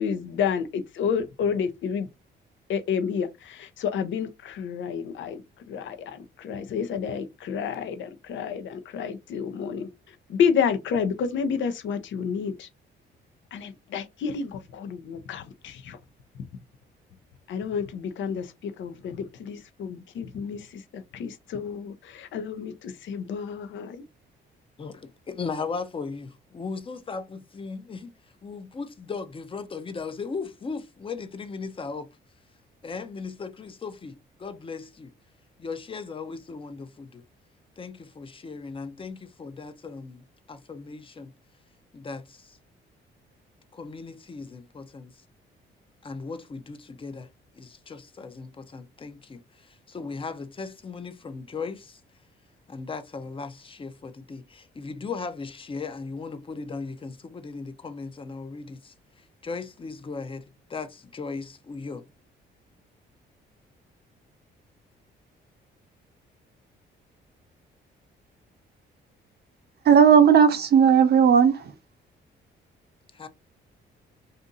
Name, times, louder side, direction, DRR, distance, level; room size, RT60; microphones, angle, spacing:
voice 1, 0.0-2.1 2.7-5.4 5.7-9.9 10.3-12.7 13.5-16.0 17.5-20.7 20.9-24.0, left 7 dB, 70° left, 0.6 m, -30 dB
voice 2, 24.8-28.1 28.4-32.1 32.8-35.1 35.6-37.2 37.8-41.3 41.9-42.6 43.7-45.1 46.0-47.3 47.5-52.0 52.7-58.9 59.4-62.0 73.1-73.3, left 4 dB, 25° left, 0.6 m, -37 dB
voice 3, 69.8-71.7, right 7 dB, 55° right, 0.6 m, -16 dB
2.6 x 2.6 x 3.8 m
cardioid pair, 90°, 20 cm